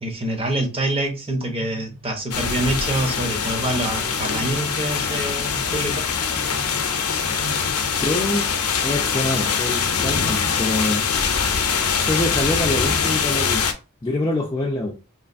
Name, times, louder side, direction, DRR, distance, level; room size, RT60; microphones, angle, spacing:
voice 1, 0.0-6.1, right 1 dB, 25° right, 0.7 m, -26 dB
sound 1, 1.5-2.5 4.1-10.6, right 3 dB, 75° right, 1.4 m, -41 dB
sound 2, 2.3-13.7, left 6 dB, 75° left, 0.6 m, -23 dB
voice 2, 7.8-8.5 8.8-11.0 12.0-13.6 14.0-14.9, left 1 dB, 15° left, 0.4 m, -25 dB
3.1 x 2.5 x 2.5 m
head